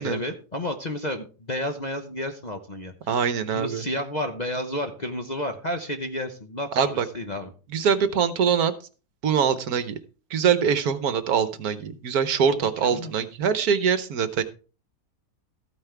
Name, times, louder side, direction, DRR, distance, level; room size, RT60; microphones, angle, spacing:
voice 1, 0.0-3.2 3.5-7.5 12.8-13.1, left 1 dB, 35° left, 5 dB, 0.8 m, -31 dB
voice 2, 3.1-3.8 6.7-7.1 7.7-8.7 9.2-10.0 10.3-14.4, right 7 dB, 70° right, 12 dB, 1.4 m, -23 dB
14.0 x 9.5 x 3.4 m, 0.36 s
omnidirectional pair, 1.8 m